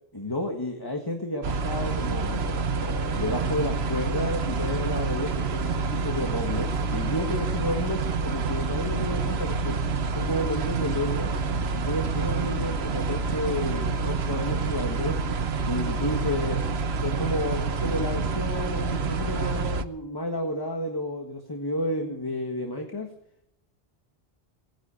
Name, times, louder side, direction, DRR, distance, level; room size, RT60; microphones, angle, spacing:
voice 1, 0.1-9.8 10.1-11.3 11.8-15.2 15.6-16.6 17.0-23.1, left 1 dB, 20° left, 3 dB, 1.7 m, -31 dB
sound 1, 1.4-19.8, right 4 dB, 75° right, 1.2 m, -28 dB
19.0 x 10.5 x 7.0 m, 0.77 s
omnidirectional pair, 1.1 m